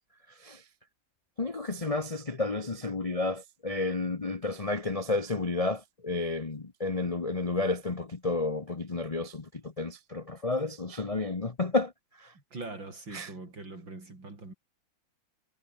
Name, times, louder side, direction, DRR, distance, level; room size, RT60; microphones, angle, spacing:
voice 1, 1.4-9.4 9.8-11.9 13.1-13.3, left 3 dB, 25° left, 0.7 m, -31 dB
voice 2, 12.3-14.5, right 3 dB, 65° right, 6.7 m, -42 dB
omnidirectional pair, 2.2 m